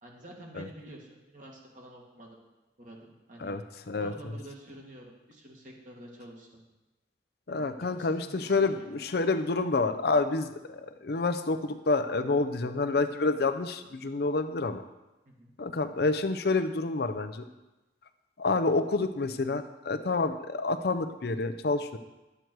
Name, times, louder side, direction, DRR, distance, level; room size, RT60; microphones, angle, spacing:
voice 1, 0.0-2.4 2.8-3.6 4.0-6.6 7.5-9.0 15.3-15.5, right 1 dB, 45° right, -1 dB, 2.2 m, -48 dB
voice 2, 7.5-14.8 15.6-17.4 18.4-22.0, left 3 dB, 60° left, 9 dB, 0.6 m, -28 dB
11.0 x 7.9 x 4.6 m, 1.0 s
head